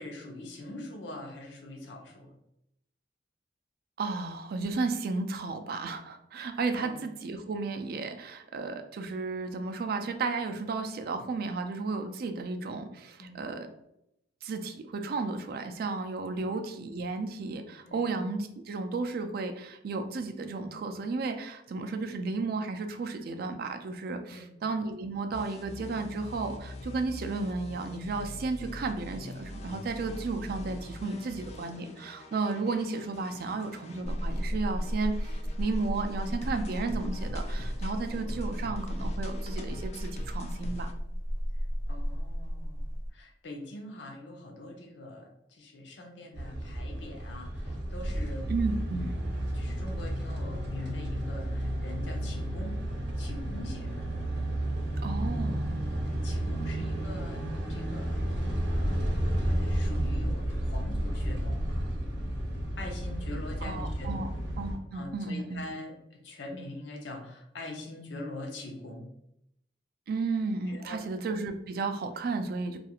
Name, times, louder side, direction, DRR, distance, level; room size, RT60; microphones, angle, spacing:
voice 1, 0.0-2.3 6.7-7.0 13.2-13.4 17.8-18.1 24.3-24.5 41.9-42.9 43.1-48.5 48.8-49.0 49.5-52.8 53.2-54.0 56.2-58.2 58.6-61.6 62.8-64.3 64.9-69.1 70.7-71.1, left 1 dB, 90° left, 1 dB, 0.6 m, -43 dB
voice 2, 4.0-13.7 14.4-40.9 48.5-49.1 55.0-55.8 63.6-64.3 64.6-65.6 70.1-72.8, right 3 dB, 55° right, 7 dB, 0.3 m, -33 dB
sound 1, 25.3-40.9, left 1 dB, 40° left, 0.3 m, -44 dB
sound 2, 34.0-43.1, equal, 35° right, 0.7 m, -34 dB
sound 3, 46.3-64.8, right 1 dB, 75° right, 0.7 m, -32 dB
2.4 x 2.3 x 2.8 m, 0.79 s
head